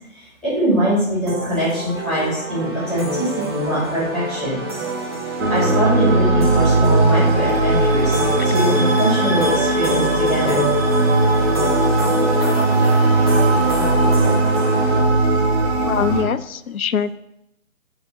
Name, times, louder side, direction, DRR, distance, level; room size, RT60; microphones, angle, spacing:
voice 1, 0.1-4.6 5.2-10.6, equal, ahead, -13 dB, 2.8 m, -23 dB
sound 1, 1.3-15.0, right 1 dB, 20° right, 0.7 m, -27 dB
sound 2, 5.4-16.2, right 2 dB, 50° right, 1.7 m, -18 dB
voice 2, 15.8-17.1, left 7 dB, 85° left, 14 dB, 0.6 m, -23 dB
6.9 x 4.0 x 6.2 m, 0.84 s
figure-of-eight pair, 150°, 41 cm